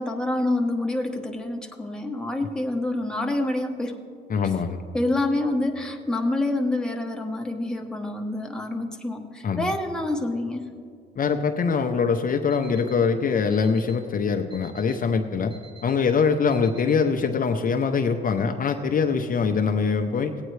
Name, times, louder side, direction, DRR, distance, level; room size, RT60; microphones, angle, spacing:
voice 1, 0.0-4.0 4.9-10.7, left 2 dB, 5° left, 2 dB, 1.0 m, -27 dB
voice 2, 4.3-4.8 9.4-9.7 11.2-15.5 15.8-20.3, left 5 dB, 45° left, 5 dB, 0.6 m, -23 dB
Alarm, 12.5-12.9 13.5-13.9 14.5-14.9 15.5-15.9 16.5-16.9, right 5 dB, 25° right, 1.7 m, -49 dB
17.0 x 9.0 x 3.2 m, 2.2 s
cardioid pair, 90°, 20 cm